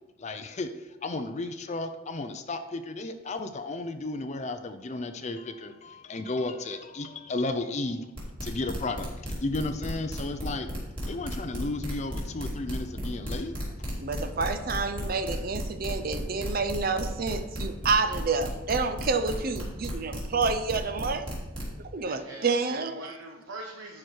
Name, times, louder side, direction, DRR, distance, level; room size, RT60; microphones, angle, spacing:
voice 1, 0.2-8.1 8.4-10.7 11.0-13.9, left 2 dB, 35° left, 8 dB, 0.5 m, -33 dB
sound 1, 8.2-21.7, equal, 25° right, 2.5 m, -34 dB
voice 2, 14.0-21.3 21.9-23.0, right 4 dB, 45° right, 10 dB, 0.6 m, -28 dB
voice 3, 22.0-24.0, right 2 dB, 70° right, 0 dB, 1.0 m, -42 dB
11.0 x 4.8 x 4.5 m, 1.1 s
head